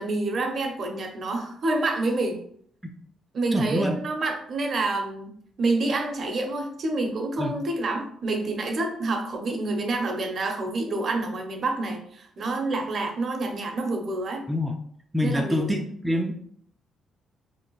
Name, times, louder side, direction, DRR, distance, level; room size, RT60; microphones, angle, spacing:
voice 1, 0.0-2.4 3.3-5.3 5.6-14.4 15.2-15.8, right 2 dB, 50° right, 3 dB, 0.6 m, -28 dB
voice 2, 3.5-4.0 7.4-7.5 14.5-14.7 15.1-16.3, left 1 dB, 5° right, 2 dB, 0.3 m, -25 dB
2.6 x 2.1 x 3.0 m, 0.64 s
cardioid pair, 90°, 0 cm